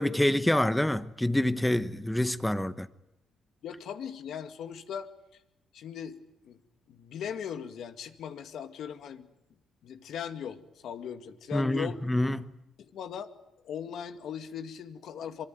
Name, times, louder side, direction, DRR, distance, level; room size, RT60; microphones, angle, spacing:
voice 1, 0.0-2.9 11.5-12.5, left 1 dB, 5° left, 1.0 m, -27 dB
voice 2, 3.6-5.1 5.7-6.2 6.4-6.6 6.9-9.3 9.8-12.0 12.8-13.3 13.6-15.4, left 8 dB, 60° left, 2.1 m, -39 dB
25.5 x 25.0 x 9.4 m
cardioid pair, 160°, 0 cm